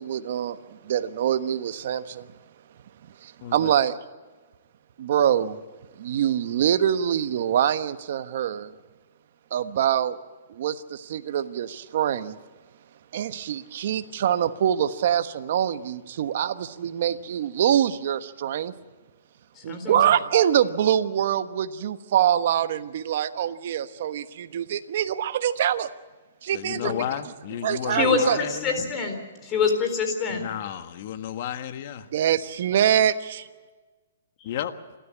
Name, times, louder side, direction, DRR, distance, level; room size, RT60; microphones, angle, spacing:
voice 1, 0.0-2.3 3.2-4.0 5.0-5.6 6.0-8.7 9.5-10.2 10.5-12.4 13.1-18.7 19.6-25.9 26.4-26.9 27.6-28.4 32.1-33.5, right 10 dB, 55° right, 11 dB, 1.2 m, -24 dB
voice 2, 3.4-3.7 26.5-28.8 30.3-32.1 34.4-34.7, left 10 dB, 50° left, 9 dB, 1.5 m, -32 dB
voice 3, 19.6-20.0 26.8-26.9 27.9-29.2 29.4-30.4, left 5 dB, 25° left, 5 dB, 4.2 m, -25 dB
29.0 x 13.0 x 8.6 m, 1.3 s
hypercardioid pair, 150°, 0 cm